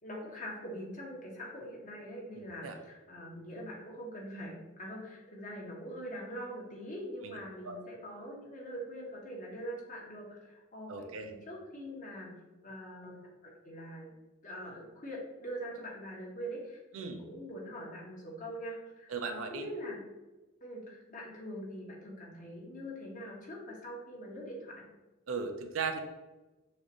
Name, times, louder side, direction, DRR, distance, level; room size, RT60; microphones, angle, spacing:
voice 1, 0.0-12.3 12.6-14.1 14.4-20.0 20.6-24.8, equal, 40° left, -3 dB, 1.2 m, -43 dB
voice 2, 2.4-2.8 7.2-7.4 7.6-7.8 10.9-11.3 16.9-17.2 19.1-19.7 25.3-26.0, right 5 dB, 75° right, 6 dB, 0.5 m, -37 dB
6.4 x 2.5 x 3.0 m, 1.1 s
head